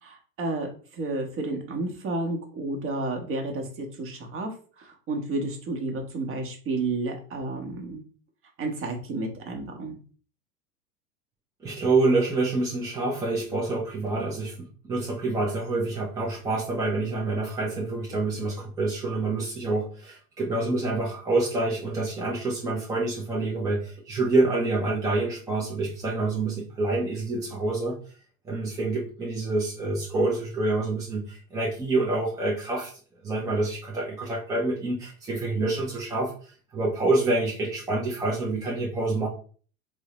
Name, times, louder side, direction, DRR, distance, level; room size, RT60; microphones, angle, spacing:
voice 1, 0.0-8.0 8.6-10.0, right 2 dB, 30° right, 3 dB, 0.8 m, -31 dB
voice 2, 11.6-28.0 28.4-39.3, right 2 dB, 10° right, -3 dB, 0.4 m, -27 dB
3.5 x 2.1 x 2.9 m, 0.41 s
hypercardioid pair, 90°, 44 cm